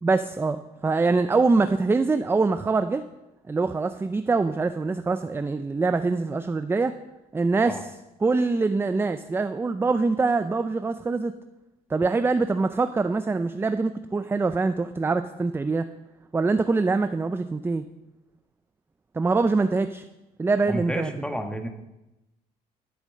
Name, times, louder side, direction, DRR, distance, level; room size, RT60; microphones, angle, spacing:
voice 1, 0.0-3.0 3.5-6.9 7.3-7.8 8.2-11.3 11.9-15.9 16.3-17.8 19.1-20.0 20.4-21.1, right 3 dB, 15° right, 10 dB, 0.4 m, -24 dB
voice 2, 20.7-21.7, equal, 5° left, 5 dB, 1.3 m, -31 dB
12.0 x 7.1 x 6.4 m, 0.97 s
cardioid pair, 110°, 17 cm